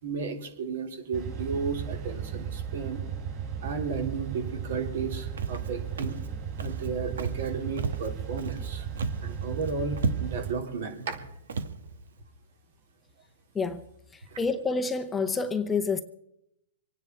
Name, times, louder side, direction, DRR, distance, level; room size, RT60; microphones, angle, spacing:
voice 1, 0.0-3.0 3.6-6.1 6.6-8.9 9.2-11.2 14.3-14.4, right 5 dB, 65° right, 3.5 m, -33 dB
sound 1, 1.1-10.5, right 8 dB, 30° right, 5.0 m, -35 dB
Walk footsteps, 5.4-5.7 6.0-6.3 6.6-6.9 7.2-7.5 7.8-8.7 9.0-9.3 9.6-9.7 10.0-10.5 11.0-11.2 11.5-11.8, right 4 dB, 85° right, 1.4 m, -32 dB
voice 2, 14.4-16.0, left 4 dB, 10° left, 0.7 m, -28 dB
26.0 x 9.7 x 4.5 m
hypercardioid pair, 145°, 0 cm